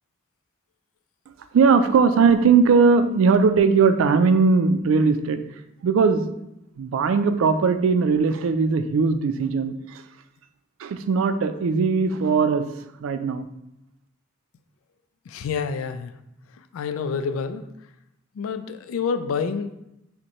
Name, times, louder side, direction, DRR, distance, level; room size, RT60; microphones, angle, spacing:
voice 1, 1.5-5.5 5.8-6.4 6.8-10.0 10.8-12.7 13.0-13.5, right 5 dB, 75° right, 10 dB, 0.3 m, -19 dB
voice 2, 15.3-16.1 16.6-17.6 18.4-19.7, left 5 dB, 85° left, 10 dB, 0.3 m, -28 dB
5.2 x 2.1 x 2.9 m, 0.83 s
head